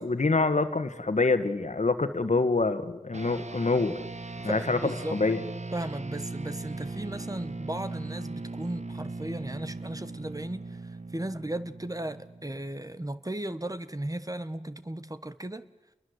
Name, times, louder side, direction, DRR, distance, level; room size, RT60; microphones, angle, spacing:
voice 1, 0.0-4.0 4.4-5.4, left 3 dB, 85° left, 1.5 m, -26 dB
sound 1, 3.1-12.8, right 3 dB, 75° right, 1.2 m, -39 dB
voice 2, 4.4-5.2 5.7-15.7, right 1 dB, 30° right, 1.3 m, -36 dB
29.5 x 22.0 x 8.0 m
wide cardioid pair, 45°, 12 cm